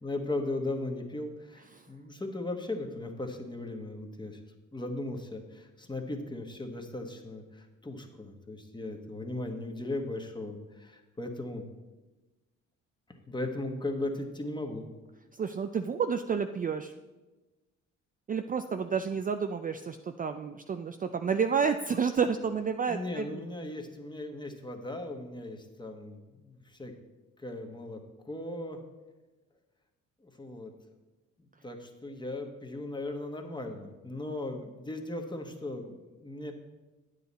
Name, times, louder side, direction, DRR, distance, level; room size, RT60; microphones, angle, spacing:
voice 1, 0.0-4.4 4.7-11.6 13.1-14.9 22.9-26.9 27.4-28.0 28.2-28.8 30.2-30.7 31.6-36.5, left 2 dB, 15° left, 3 dB, 1.3 m, -37 dB
voice 2, 15.3-16.9 18.3-23.3, right 6 dB, 30° right, 7 dB, 0.4 m, -30 dB
9.5 x 8.1 x 4.1 m, 1.1 s
cardioid pair, 90°, 31 cm